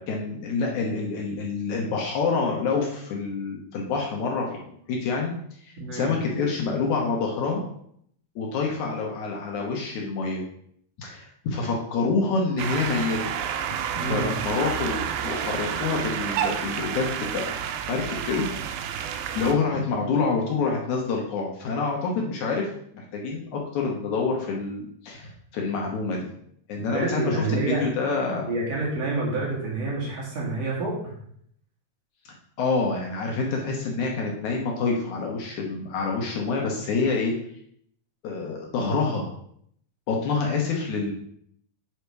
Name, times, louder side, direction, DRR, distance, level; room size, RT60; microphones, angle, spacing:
voice 1, 0.0-7.6 8.4-10.4 11.0-13.3 13.9-17.6 17.9-18.5 18.8-22.7 22.9-26.3 26.7-28.5 32.3-37.3 38.2-39.3 40.1-41.1, left 4 dB, 65° left, 0 dB, 2.1 m, -27 dB
voice 2, 5.8-6.1 13.9-14.4 26.8-27.8 28.5-31.1, right 3 dB, 45° right, -4 dB, 3.0 m, -28 dB
sound 1, 12.6-19.5, right 8 dB, 85° right, 2.5 m, -30 dB
8.3 x 4.2 x 4.6 m, 0.68 s
omnidirectional pair, 4.4 m